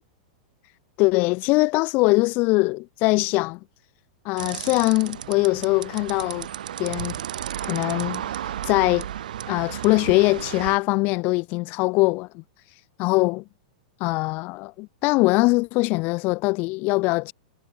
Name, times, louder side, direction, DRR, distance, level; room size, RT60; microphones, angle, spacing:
voice 1, 1.0-3.6 4.2-6.5 6.8-7.2 7.6-8.2 8.6-9.1 9.5-12.4 13.0-13.4 14.0-17.3, left 25 dB, 45° left, 7.9 m, -22 dB
sound 1, 4.4-10.8, right 11 dB, 80° right, 6.2 m, -33 dB
hypercardioid pair, 135°, 4 cm